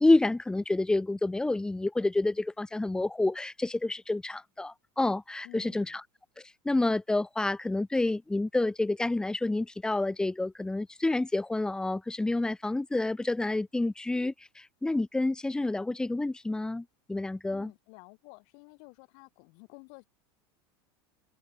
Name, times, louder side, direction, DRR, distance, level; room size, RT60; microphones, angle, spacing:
voice 1, 0.0-6.0 6.6-17.7, left 2 dB, 5° left, 0.4 m, -28 dB
voice 2, 5.4-6.0 17.5-20.1, left 40 dB or more, 65° left, 6.4 m, -52 dB
hypercardioid pair, 105°, 13 cm